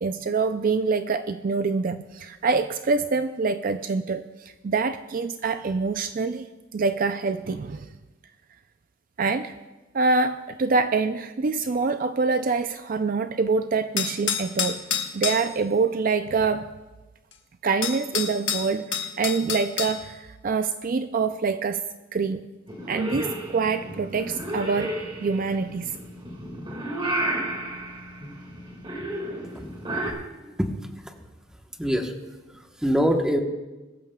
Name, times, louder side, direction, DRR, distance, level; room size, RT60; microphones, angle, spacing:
voice 1, 0.0-6.5 6.7-7.9 9.2-9.6 9.9-14.8 15.1-16.7 17.6-21.8 22.1-22.4 22.9-26.0, right 4 dB, 45° right, 9 dB, 0.4 m, -25 dB
sound 1, 14.0-15.5 17.3-17.4 17.8-20.0, left 7 dB, 65° left, 1.5 m, -27 dB
Purr / Meow, 22.7-30.1, right 1 dB, 25° right, 2.0 m, -32 dB
voice 2, 30.4-31.1 31.8-32.1 32.6-33.4, equal, 5° right, 3 dB, 1.1 m, -25 dB
22.0 x 13.5 x 2.3 m, 1.2 s
head